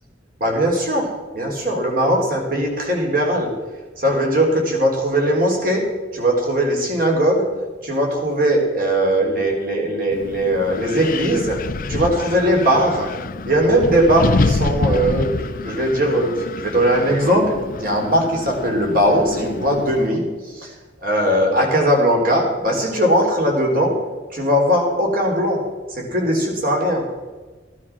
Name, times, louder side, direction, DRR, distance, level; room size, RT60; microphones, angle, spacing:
voice 1, 0.4-1.1 1.3-3.5 4.0-5.8 6.1-7.4 7.8-11.6 11.9-13.1 13.5-15.3 15.6-20.7 21.0-23.9 24.3-25.6 25.9-27.0, equal, 50° right, 1 dB, 3.9 m, -19 dB
Wind, 10.1-20.1, left 3 dB, 50° left, 0.5 m, -26 dB
15.0 x 12.0 x 6.1 m, 1.3 s
head